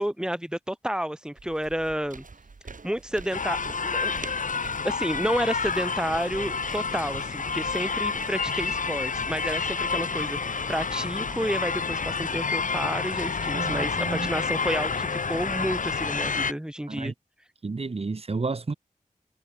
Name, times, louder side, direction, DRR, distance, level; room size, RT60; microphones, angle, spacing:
voice 1, 0.0-2.2 2.8-4.1 4.6-17.1, equal, 5° right, 1.9 m, -30 dB
sound 1, 1.4-11.4, right 4 dB, 70° right, 4.1 m, -46 dB
sound 2, 3.3-16.5, left 5 dB, 70° left, 1.0 m, -29 dB
voice 2, 13.5-14.3 16.9-17.1 17.6-18.7, right 3 dB, 45° right, 0.9 m, -31 dB
wide cardioid pair, 50°, 14 cm